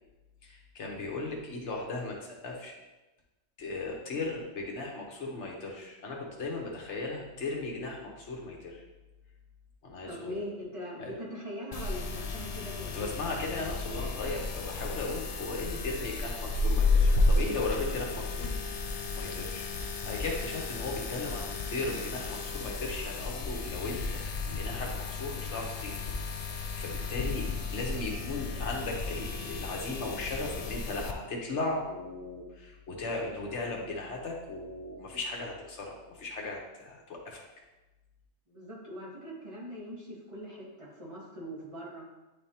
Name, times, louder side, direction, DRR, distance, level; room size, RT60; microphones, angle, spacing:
voice 1, 0.4-2.7 3.6-8.8 9.8-10.4 11.0-11.1 12.5-18.5 18.9-26.0 26.4-37.4, left 3 dB, 85° left, 0 dB, 1.4 m, -37 dB
voice 2, 10.0-13.1 38.5-42.1, equal, 25° right, -8 dB, 1.9 m, -41 dB
sound 1, 11.7-31.1, left 3 dB, 55° left, 0.4 m, -32 dB
9.7 x 3.5 x 2.9 m, 1.1 s
omnidirectional pair, 1.2 m